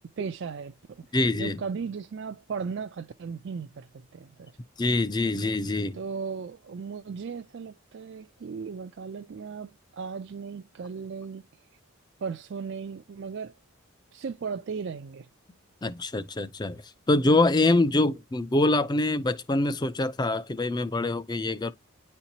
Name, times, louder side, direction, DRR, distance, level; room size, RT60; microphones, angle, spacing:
voice 1, 0.2-1.0 1.4-4.5 5.9-11.5 12.2-13.5 14.1-15.3, right 5 dB, 55° right, 0.4 m, -36 dB
voice 2, 1.1-1.6 4.8-6.0 15.8-16.8 17.1-21.7, left 2 dB, 20° left, 0.4 m, -24 dB
9.7 x 4.3 x 2.8 m
head